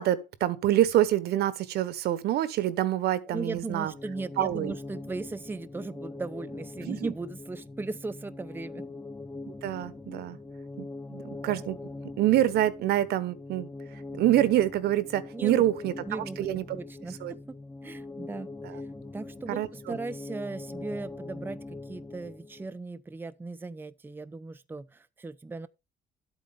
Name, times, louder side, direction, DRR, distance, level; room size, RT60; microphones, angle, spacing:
voice 1, 0.0-3.9 4.4-4.7 6.8-7.1 9.5-10.4 10.8-11.8 12.2-13.7 14.1-16.6 17.2-17.3 18.6-18.8 19.5-20.0, right 13 dB, 75° right, 1.2 m, -26 dB
voice 2, 3.2-8.9 15.3-15.6 16.1-16.4 16.7-18.5 19.1-25.7, right 3 dB, 10° right, 0.7 m, -37 dB
sound 1, 3.9-22.7, left 2 dB, 10° left, 1.0 m, -42 dB
11.5 x 8.5 x 3.6 m
cardioid pair, 110°, 17 cm